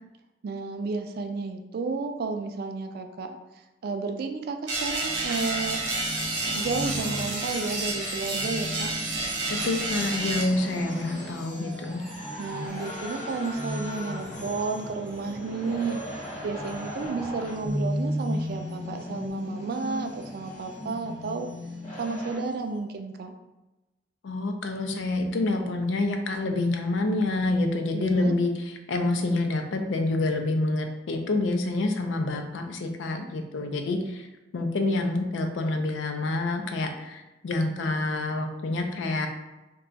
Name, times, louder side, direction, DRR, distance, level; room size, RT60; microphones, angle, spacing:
voice 1, 0.4-3.4 3.8-5.8 6.5-8.9 12.4-16.0 16.4-21.5 22.0-23.3 27.9-28.3, right 4 dB, 55° right, 6 dB, 0.3 m, -32 dB
sound 1, 4.7-10.4, right 3 dB, 90° right, 0.7 m, -30 dB
sound 2, 5.0-22.4, equal, 40° left, 0.9 m, -36 dB
Chime, 5.3-19.3 19.7-22.5, equal, 5° left, 0.7 m, -43 dB
voice 2, 9.5-12.0 24.2-34.3 34.5-39.3, left 2 dB, 80° left, 5 dB, 0.4 m, -27 dB
2.3 x 2.2 x 3.8 m, 1.0 s
head